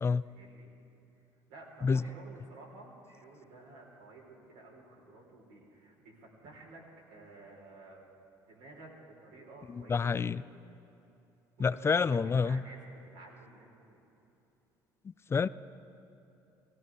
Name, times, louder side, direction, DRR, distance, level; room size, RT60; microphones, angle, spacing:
voice 1, 0.2-0.7 1.5-6.8 7.1-8.0 8.4-10.3 11.6-14.0, right 2 dB, 80° right, -2 dB, 3.7 m, -53 dB
voice 2, 9.7-10.4 11.6-12.6 15.3-15.5, left 5 dB, 25° left, 18 dB, 0.4 m, -28 dB
18.0 x 15.5 x 4.7 m, 2.9 s
supercardioid pair, 75°, 10 cm